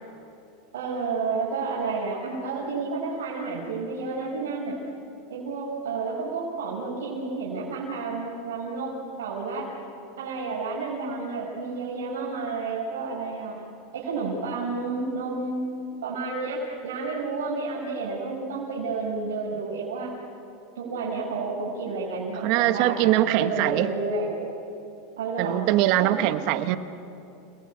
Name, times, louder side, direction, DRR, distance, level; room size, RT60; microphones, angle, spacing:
voice 1, 0.7-4.8 5.3-9.7 10.2-13.6 13.9-20.1 20.7-24.3 25.2-25.6 25.9-26.2, right 4 dB, 85° right, -6 dB, 5.9 m, -30 dB
voice 2, 22.4-23.9 25.4-26.8, right 14 dB, 60° right, 11 dB, 1.3 m, -22 dB
29.5 x 18.5 x 8.6 m, 2.7 s
supercardioid pair, 120°, 0 cm